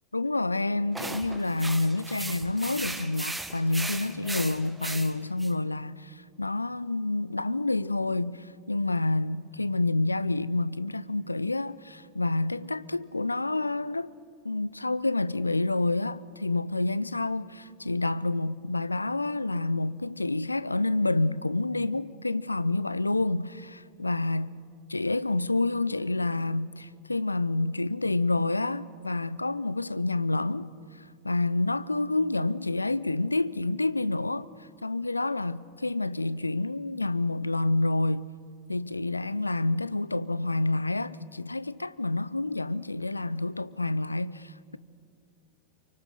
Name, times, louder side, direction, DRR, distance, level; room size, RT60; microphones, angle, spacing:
voice 1, 0.1-14.1 14.4-24.6 24.9-30.7 31.2-34.5 34.8-38.3 38.7-44.8, left 2 dB, 80° left, 0.5 m, -28 dB
sound 1, 0.9-5.5, right 2 dB, 5° right, 1.0 m, -37 dB
24.5 x 24.5 x 6.6 m
figure-of-eight pair, 90°, 0 cm